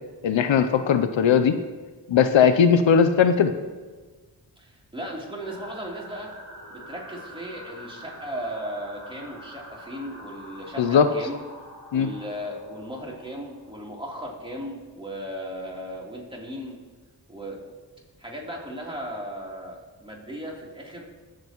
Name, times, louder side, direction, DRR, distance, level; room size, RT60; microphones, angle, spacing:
voice 1, 0.2-1.6 2.1-3.5 10.8-11.1 11.9-12.1, left 7 dB, 85° left, 10 dB, 0.7 m, -18 dB
voice 2, 4.6-6.3 6.7-11.4 11.9-16.8 17.3-17.7 18.2-21.0, equal, 10° right, -3 dB, 3.3 m, -36 dB
sound 1, 5.4-13.9, equal, 40° right, 4.2 m, -45 dB
21.5 x 7.5 x 3.0 m, 1.3 s
cardioid pair, 45°, 44 cm